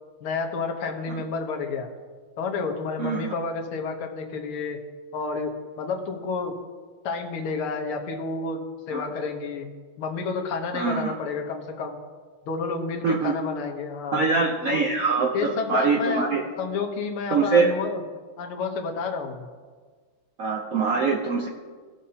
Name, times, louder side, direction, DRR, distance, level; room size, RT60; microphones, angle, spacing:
voice 1, 0.2-1.9 2.4-4.8 5.1-6.6 7.0-9.7 10.0-12.0 12.5-14.3 14.7-14.9 15.3-16.3 16.6-18.0 18.4-19.5, left 4 dB, 80° left, 3 dB, 1.9 m, -30 dB
voice 2, 3.0-3.3 8.9-9.0 10.7-11.1 13.0-13.4 14.1-16.4 17.3-17.7 20.4-21.5, right 4 dB, 70° right, -1 dB, 0.8 m, -23 dB
18.5 x 6.5 x 2.8 m, 1.5 s
omnidirectional pair, 2.4 m